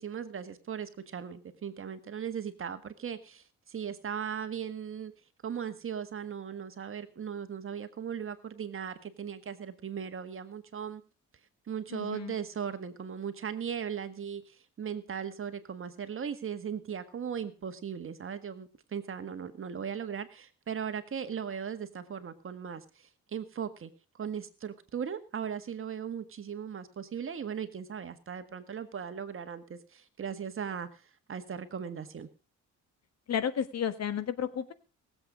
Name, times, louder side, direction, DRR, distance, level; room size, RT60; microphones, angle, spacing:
voice 1, 0.0-5.1 5.4-11.0 11.7-31.0 31.3-32.3, right 7 dB, 45° right, 10 dB, 1.7 m, -38 dB
voice 2, 11.9-12.3 33.3-34.7, left 8 dB, 60° left, 13 dB, 1.5 m, -32 dB
19.0 x 8.0 x 5.0 m, 0.34 s
cardioid pair, 90°, 30 cm